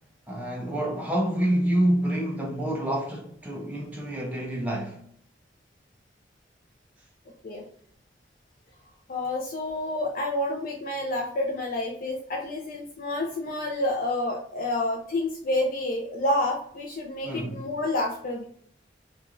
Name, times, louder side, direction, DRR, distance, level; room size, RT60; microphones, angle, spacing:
voice 1, 0.3-5.0 17.3-17.7, right 1 dB, 10° right, 0.4 m, -27 dB
voice 2, 9.1-18.4, left 1 dB, 50° left, 0.4 m, -29 dB
3.0 x 2.3 x 2.4 m
head